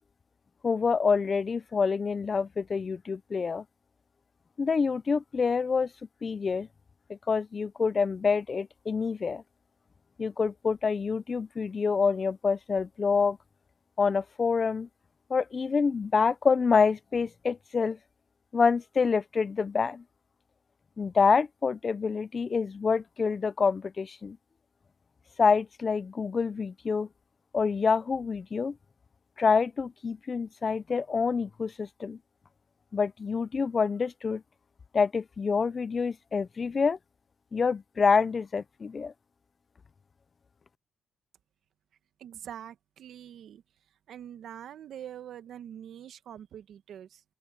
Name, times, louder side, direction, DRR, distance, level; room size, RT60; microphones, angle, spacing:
voice 1, 0.6-3.6 4.6-5.9 6.2-6.7 7.1-9.4 10.2-13.4 14.0-14.9 15.3-18.0 18.5-20.0 21.0-24.4 25.4-27.1 27.5-28.8 29.4-32.2 32.9-34.4 34.9-37.0 37.5-39.1, left 5 dB, 35° left, 0.6 m, -27 dB
voice 2, 42.2-43.6 44.1-47.2, right 10 dB, 70° right, 1.4 m, -44 dB
open air
cardioid pair, 90°, 0 cm